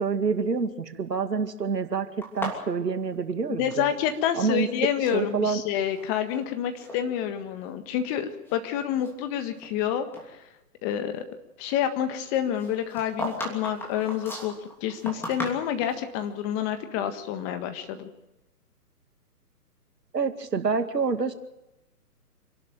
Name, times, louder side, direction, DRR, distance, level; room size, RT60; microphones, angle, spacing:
voice 1, 0.0-3.9 4.3-4.7 5.1-5.6 20.1-21.3, right 5 dB, 85° right, 8 dB, 2.2 m, -27 dB
sound 1, 2.2-4.2 4.5-5.2 5.9-6.4 6.8-7.0 7.6-7.7 8.3-9.8 10.1-10.3 12.6-16.0, equal, 5° left, 2.9 m, -37 dB
voice 2, 3.6-10.4 10.8-11.2 11.6-14.5 14.8-18.1, left 10 dB, 25° left, 8 dB, 1.6 m, -28 dB
26.5 x 12.0 x 9.3 m, 0.95 s
hypercardioid pair, 140°, 48 cm